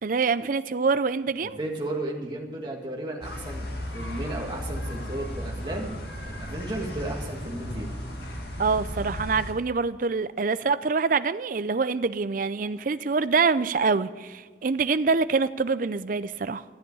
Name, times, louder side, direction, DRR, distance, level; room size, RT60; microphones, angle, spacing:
voice 1, 0.0-1.6 8.6-16.6, right 4 dB, 50° right, 14 dB, 0.5 m, -25 dB
voice 2, 1.4-7.9, right 1 dB, 25° right, 0 dB, 2.0 m, -34 dB
sound 1, 3.2-9.5, left 1 dB, 60° left, 2.0 m, -35 dB
13.5 x 7.9 x 8.4 m, 1.4 s
head